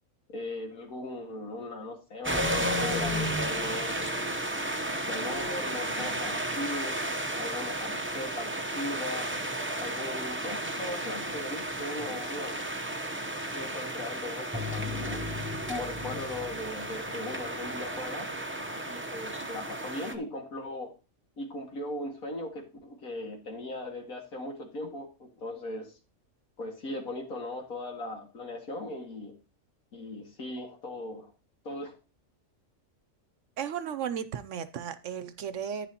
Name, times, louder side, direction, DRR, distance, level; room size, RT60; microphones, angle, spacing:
voice 1, 0.3-4.3 5.0-6.9 7.4-9.3 9.8-12.7 13.5-15.2 15.7-18.3 18.9-20.9 21.4-25.9 26.6-29.3 29.9-31.3 31.6-31.9, left 1 dB, 85° left, 2 dB, 2.5 m, -38 dB
sound 1, 2.2-20.1, right 1 dB, 15° right, 0.5 m, -33 dB
voice 2, 33.6-35.9, right 8 dB, 65° right, 12 dB, 0.9 m, -35 dB
11.0 x 9.0 x 2.9 m, 0.31 s
omnidirectional pair, 1.5 m